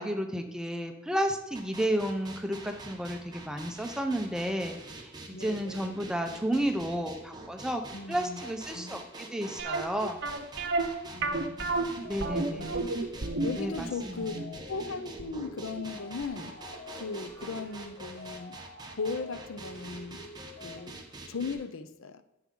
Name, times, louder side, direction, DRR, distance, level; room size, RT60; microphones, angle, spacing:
voice 1, 0.0-7.8 8.1-10.2 12.0-12.8 13.6-14.2, equal, 5° right, 5 dB, 0.6 m, -32 dB
sound 1, 1.5-21.5, right 2 dB, 20° right, 1.0 m, -46 dB
voice 2, 5.3-6.0 7.9-8.4 8.7-9.0 11.0-11.7 12.5-13.0 13.4-14.4 14.7-16.6 16.9-18.6 18.9-20.3 20.6-22.2, left 4 dB, 70° left, 11 dB, 0.6 m, -38 dB
sound 2, 9.6-16.4 16.7-16.8 17.4-17.5 17.8-17.9, right 3 dB, 50° right, 0.8 m, -32 dB
sound 3, 12.0-20.8, left 4 dB, 45° left, 1.6 m, -48 dB
10.0 x 7.4 x 3.8 m, 0.91 s
head